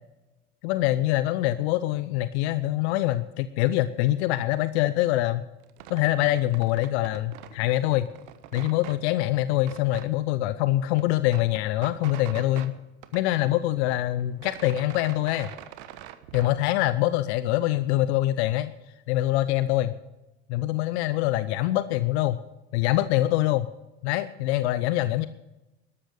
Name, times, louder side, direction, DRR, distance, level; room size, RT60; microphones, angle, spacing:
voice 1, 0.6-5.4 5.9-8.1 8.5-12.7 13.1-15.5 16.3-18.7 19.1-19.9 20.5-22.4 22.7-23.7 24.0-25.3, left 15 dB, 70° left, 14 dB, 0.7 m, -24 dB
sound 1, 5.6-7.6 7.9-9.0 9.6-10.1 10.5-10.6 10.8-12.7 13.0-13.9 14.2-16.6, right 12 dB, 70° right, 1.2 m, -44 dB
13.0 x 12.5 x 6.6 m, 1.0 s
hypercardioid pair, 60°, 34 cm